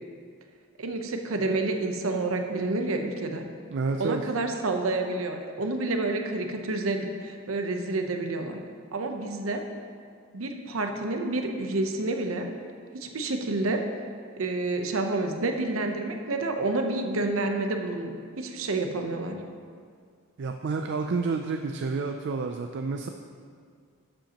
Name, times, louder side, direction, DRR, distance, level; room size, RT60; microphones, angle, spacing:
voice 1, 0.8-3.5 4.0-8.6 8.9-9.6 10.3-12.5 12.9-13.8 14.4-18.1 18.4-19.4, right 2 dB, 85° right, 4 dB, 0.8 m, -29 dB
voice 2, 3.7-4.2 20.4-23.1, right 4 dB, 55° right, 4 dB, 0.4 m, -29 dB
12.0 x 7.7 x 2.9 m, 2.1 s
head